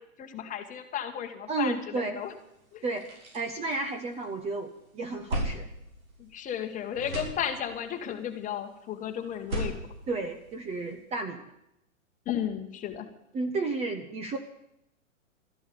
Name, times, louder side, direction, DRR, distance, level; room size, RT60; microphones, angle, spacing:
voice 1, 0.0-2.3 2.7-2.8 6.2-9.7 12.3-13.1, left 9 dB, 20° left, 6 dB, 1.6 m, -34 dB
voice 2, 1.5-2.2 2.8-3.0 3.3-5.7 10.1-11.5 13.3-14.4, right 3 dB, 15° right, 7 dB, 1.0 m, -32 dB
sound 1, 2.3-2.4 2.8-4.4 4.8-6.7 6.9-8.0 9.3-10.9, right 1 dB, 90° right, 6.1 m, -37 dB
13.5 x 11.0 x 8.6 m, 0.80 s
hypercardioid pair, 140°, 40 cm